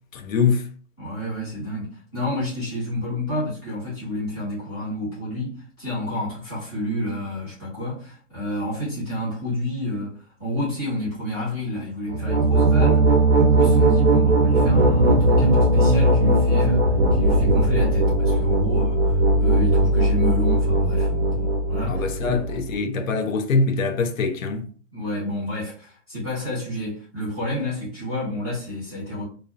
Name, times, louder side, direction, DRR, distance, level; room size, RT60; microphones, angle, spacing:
voice 1, 0.1-0.7 21.9-24.7, left 4 dB, 80° left, 0.6 m, -23 dB
voice 2, 1.0-22.5 24.9-29.2, left 1 dB, 5° left, 0.5 m, -30 dB
sound 1, 12.1-22.7, right 1 dB, 50° right, 0.5 m, -18 dB
2.5 x 2.0 x 2.6 m
hypercardioid pair, 170°, 39 cm